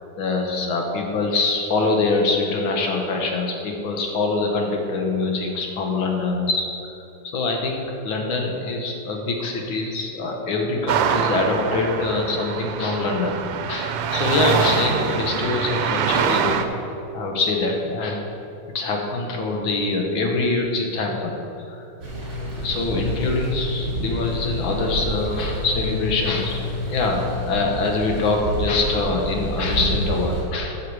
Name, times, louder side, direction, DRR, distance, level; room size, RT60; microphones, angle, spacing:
voice 1, 0.2-6.7 7.3-16.7 17.1-18.3 18.8-21.4 21.7-21.8 22.6-26.6 26.9-30.8, left 3 dB, 70° left, 1 dB, 1.9 m, -24 dB
sound 1, 10.9-16.6, right 8 dB, 85° right, 1.5 m, -24 dB
sound 2, 22.0-30.4, equal, 55° right, 3.0 m, -28 dB
12.0 x 6.7 x 4.7 m, 2.8 s
omnidirectional pair, 2.4 m